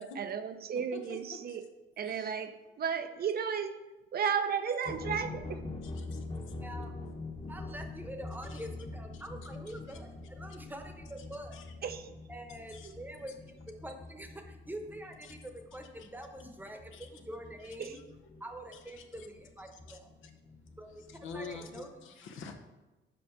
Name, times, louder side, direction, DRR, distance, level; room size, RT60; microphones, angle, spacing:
voice 1, 0.0-1.7 2.0-3.8 4.1-5.6 11.8-12.1 17.8-18.0, right 7 dB, 50° right, 9 dB, 0.6 m, -34 dB
voice 2, 0.9-1.6 2.0-2.3 5.8-6.6 8.5-8.7 9.1-9.2 9.9-10.0 11.5-11.7 12.7-12.9 15.2-15.3 16.0-16.1 16.9-17.2 17.6-18.0 18.3-18.4 18.7-19.3 19.7-20.3 20.9-22.6, left 4 dB, 80° left, 6 dB, 0.9 m, -48 dB
sound 1, 4.8-21.9, left 3 dB, 30° left, 1.1 m, -45 dB
voice 3, 6.6-7.0 7.5-11.6 12.3-18.0 18.4-20.1 20.8-22.0, right 1 dB, 10° right, 5 dB, 0.9 m, -45 dB
5.3 x 4.7 x 6.1 m, 1.1 s
cardioid pair, 90°, 20 cm